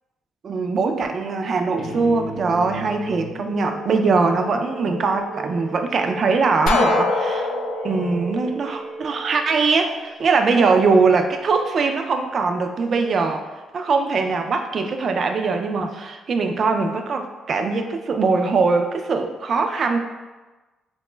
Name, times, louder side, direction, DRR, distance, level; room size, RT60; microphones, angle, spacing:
voice 1, 0.4-7.5 7.8-13.4 13.7-20.0, right 4 dB, 50° right, 5 dB, 0.3 m, -21 dB
sound 1, 1.8-9.7, right 2 dB, 25° left, 0.8 m, -35 dB
sound 2, 6.7-9.5, left 3 dB, 80° left, 0.3 m, -24 dB
2.9 x 2.2 x 3.1 m, 1.2 s
cardioid pair, 90°, 0 cm